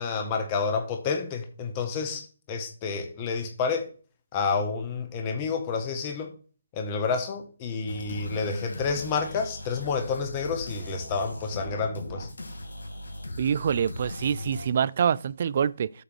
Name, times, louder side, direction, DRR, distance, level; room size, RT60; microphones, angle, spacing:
voice 1, 0.0-3.9 4.3-6.3 6.7-12.3, left 5 dB, 25° left, 1.5 m, -29 dB
sound 1, 7.9-14.7, left 1 dB, 85° left, 3.1 m, -38 dB
voice 2, 13.4-15.9, right 8 dB, 50° right, 0.4 m, -25 dB
8.3 x 3.5 x 6.3 m
figure-of-eight pair, 150°, 0 cm